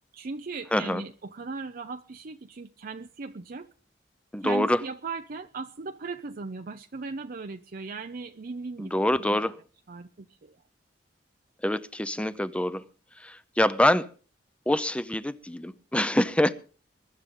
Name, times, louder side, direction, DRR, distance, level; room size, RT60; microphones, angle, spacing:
voice 1, 0.1-3.7 4.4-9.4 9.9-10.6, right 4 dB, 55° right, 0.6 m, -38 dB
voice 2, 0.7-1.0 4.3-4.8 8.8-9.6 11.6-12.8 13.2-14.1 14.7-16.5, left 1 dB, 5° left, 0.7 m, -25 dB
22.5 x 11.5 x 3.8 m
head